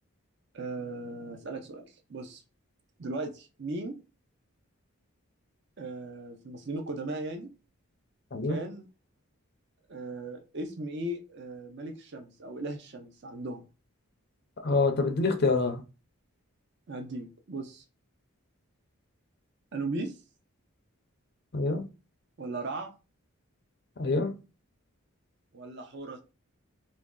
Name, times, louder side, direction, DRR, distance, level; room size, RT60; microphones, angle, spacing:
voice 1, 0.5-2.4 3.0-4.0 5.8-7.5 8.4-8.9 9.9-13.6 16.9-17.8 19.7-20.2 22.4-23.0 25.5-26.2, right 2 dB, 50° right, 0.5 m, -37 dB
voice 2, 14.6-15.8 21.5-21.9 24.0-24.3, left 3 dB, 45° left, 0.5 m, -26 dB
3.0 x 2.6 x 3.6 m
head